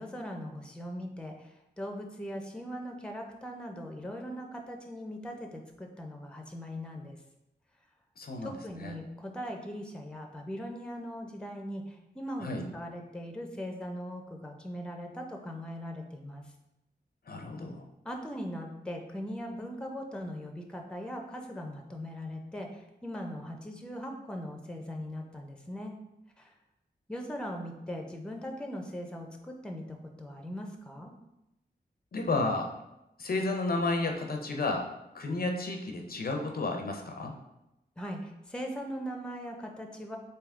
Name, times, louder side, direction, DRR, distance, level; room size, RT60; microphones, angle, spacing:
voice 1, 0.0-7.2 8.4-16.4 18.0-26.0 26.4-26.5 27.1-31.1 38.0-40.2, equal, 5° left, 3 dB, 0.5 m, -40 dB
voice 2, 8.2-8.9 12.4-12.6 17.3-17.9 32.1-32.7 33.2-34.9 35.1-37.4, left 2 dB, 60° left, 3 dB, 0.5 m, -32 dB
3.5 x 2.7 x 3.6 m, 0.91 s
wide cardioid pair, 75°, 18 cm